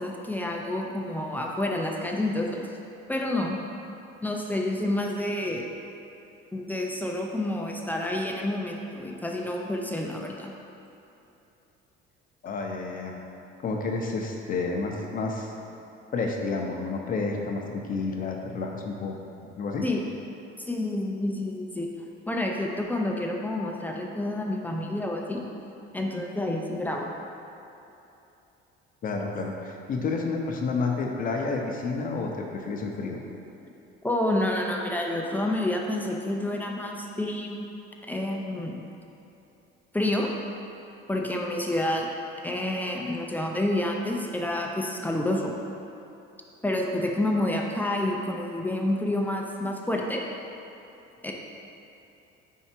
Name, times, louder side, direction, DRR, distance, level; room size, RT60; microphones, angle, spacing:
voice 1, 0.0-2.7 3.1-3.6 4.2-5.6 6.5-10.5 19.8-20.0 20.7-21.9 22.3-25.4 25.9-27.1 34.0-37.7 38.0-38.8 39.9-40.3 41.1-42.1 42.4-45.5 46.6-50.2 51.2-51.3, left 1 dB, 10° left, 0 dB, 0.5 m, -29 dB
voice 2, 12.4-13.2 13.6-15.5 16.1-19.2 19.6-19.8 29.0-33.2, left 3 dB, 40° left, 1 dB, 0.7 m, -30 dB
4.8 x 4.5 x 4.3 m, 2.9 s
cardioid pair, 125°, 21 cm